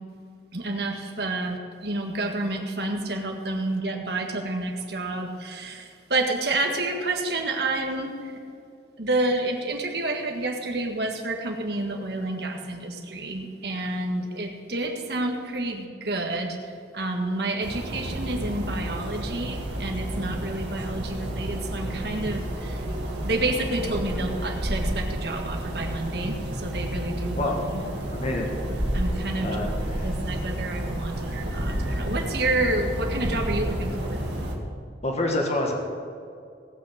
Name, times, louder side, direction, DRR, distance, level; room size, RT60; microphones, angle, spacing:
voice 1, 0.5-8.3 9.0-16.6 16.9-22.8 23.2-27.5 28.9-29.5 30.0-34.2, right 2 dB, 65° right, 2 dB, 1.7 m, -29 dB
sound 1, 17.6-34.6, right 1 dB, 85° right, 2.1 m, -30 dB
voice 2, 28.1-28.5 29.4-30.1 35.0-35.7, left 1 dB, 40° left, 1 dB, 1.7 m, -27 dB
18.5 x 6.2 x 6.6 m, 2.4 s
head